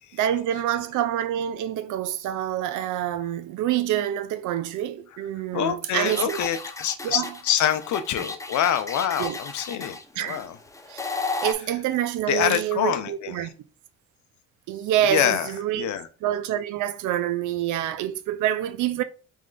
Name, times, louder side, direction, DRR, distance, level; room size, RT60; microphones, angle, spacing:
voice 1, 0.1-6.4 7.0-7.3 9.2-9.4 10.2-10.4 10.9-11.0 11.4-13.5 14.7-15.9 16.2-19.0, right 11 dB, 80° right, 0.5 m, -27 dB
voice 2, 5.5-10.6 12.3-13.5 15.1-16.1, left 10 dB, 75° left, 0.6 m, -26 dB
sound 1, 6.0-11.5, left 3 dB, 10° left, 0.6 m, -33 dB
3.6 x 3.2 x 3.7 m
cardioid pair, 90°, 30 cm